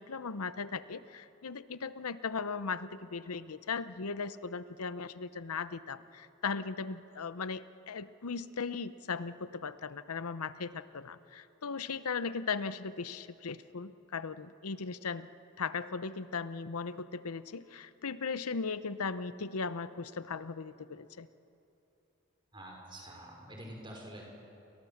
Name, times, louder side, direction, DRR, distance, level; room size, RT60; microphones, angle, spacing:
voice 1, 0.0-15.3 15.6-21.3, left 5 dB, 90° left, 14 dB, 0.8 m, -38 dB
voice 2, 22.5-24.3, right 1 dB, 20° right, 0 dB, 5.2 m, -47 dB
29.5 x 23.0 x 7.2 m, 2.8 s
head